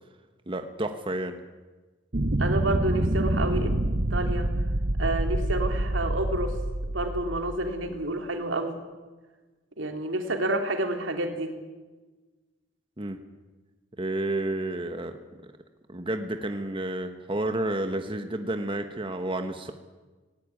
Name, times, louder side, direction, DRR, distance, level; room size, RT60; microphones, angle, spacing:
voice 1, 0.5-1.4 7.9-8.0 13.0-13.2 14.0-15.1 15.9-19.7, right 1 dB, 25° right, 6 dB, 1.3 m, -30 dB
sound 1, 2.1-7.9, right 1 dB, 45° right, 1.1 m, -27 dB
voice 2, 2.4-3.7 4.1-4.5 5.0-6.5 6.9-8.8 9.8-11.5, right 2 dB, 85° right, 5 dB, 3.1 m, -29 dB
18.0 x 18.0 x 9.7 m, 1.3 s
head